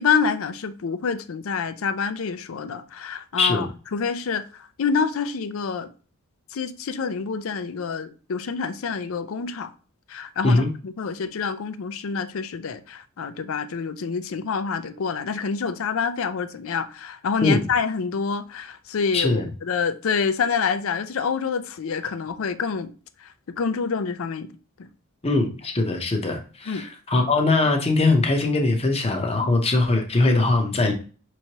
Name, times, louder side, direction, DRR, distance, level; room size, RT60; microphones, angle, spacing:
voice 1, 0.0-5.9 6.5-9.7 10.1-22.9 23.2-24.5 24.8-24.9 26.7-26.8 29.4-29.5, left 5 dB, 65° left, 0.4 m, -27 dB
voice 2, 19.1-19.5 25.2-30.9, left 2 dB, 25° left, 0.7 m, -21 dB
5.5 x 3.1 x 2.8 m
head